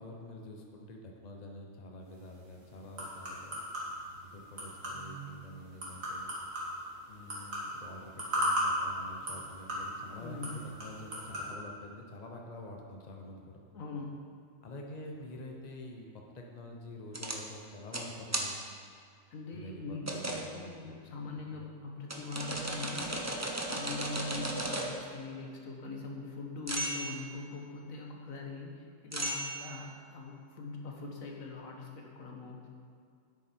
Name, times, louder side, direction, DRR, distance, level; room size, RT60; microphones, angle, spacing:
voice 1, 0.0-3.6 4.3-6.3 7.1-13.6 14.6-18.7 19.5-20.0 20.3-20.9 21.5-21.7, left 1 dB, 35° left, 1 dB, 1.0 m, -47 dB
sound 1, 2.1-11.5, equal, 80° right, 2.7 m, -38 dB
voice 2, 10.1-10.7 13.7-14.3 19.3-23.3 23.7-32.7, left 3 dB, 85° left, 0 dB, 1.7 m, -42 dB
sound 2, 17.1-17.4 17.9-18.1 18.3-18.5 20.1-20.5 22.1-25.0 26.7-27.1 29.1-29.8, right 1 dB, 15° right, 0.7 m, -35 dB
9.8 x 8.5 x 4.5 m, 2.3 s
omnidirectional pair, 1.4 m